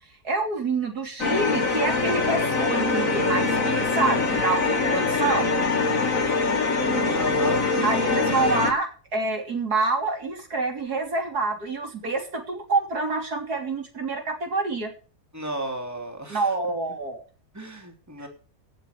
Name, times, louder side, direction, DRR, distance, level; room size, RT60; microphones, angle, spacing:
voice 1, 0.2-5.6 7.8-14.9 16.3-17.2 18.2-18.3, right 3 dB, 80° right, 4 dB, 3.7 m, -27 dB
sound 1, 1.2-8.7, left 3 dB, 60° left, 2.3 m, -23 dB
voice 2, 7.1-7.7 15.3-16.5 17.5-18.3, right 1 dB, 10° right, 3 dB, 3.4 m, -33 dB
17.5 x 7.6 x 6.9 m, 0.36 s
omnidirectional pair, 1.6 m